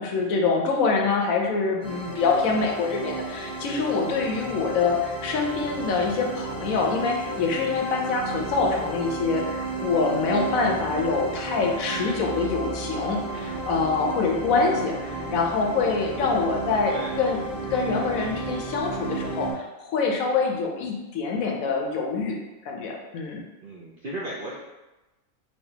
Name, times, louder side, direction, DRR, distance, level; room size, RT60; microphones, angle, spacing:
voice 1, 0.0-17.4 17.7-22.4 22.7-23.4, left 4 dB, 75° left, 1 dB, 1.0 m, -25 dB
sound 1, 1.8-19.5, right 2 dB, 45° right, 1.1 m, -33 dB
voice 2, 16.9-17.2 23.6-24.6, right 1 dB, 65° right, -6 dB, 0.5 m, -35 dB
3.2 x 2.8 x 2.8 m, 1.1 s
omnidirectional pair, 1.5 m